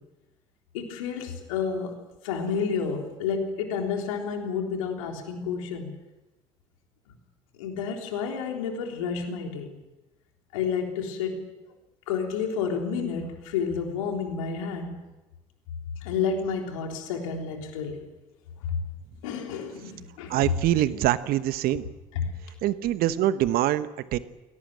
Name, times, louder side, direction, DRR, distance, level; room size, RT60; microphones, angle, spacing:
voice 1, 0.7-5.9 7.6-9.7 10.5-11.5 12.1-15.0 16.0-18.0 18.7-18.8 19.2-20.5 22.2-22.3, left 6 dB, 80° left, 2 dB, 3.6 m, -30 dB
voice 2, 20.3-21.9 22.6-24.2, right 13 dB, 60° right, 14 dB, 1.1 m, -24 dB
21.5 x 18.0 x 9.2 m, 1.1 s
hypercardioid pair, 60°, 17 cm